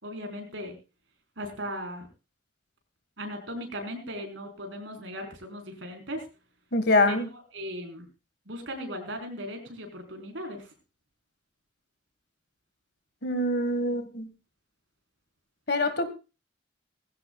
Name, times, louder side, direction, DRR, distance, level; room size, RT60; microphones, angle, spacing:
voice 1, 0.0-0.8 1.4-2.1 3.2-6.2 7.1-8.1 8.5-10.7, equal, 75° right, 4 dB, 4.2 m, -38 dB
voice 2, 6.7-7.3 13.2-14.3 15.7-16.1, left 2 dB, 60° left, 10 dB, 1.7 m, -24 dB
19.5 x 16.0 x 2.4 m, 0.30 s
head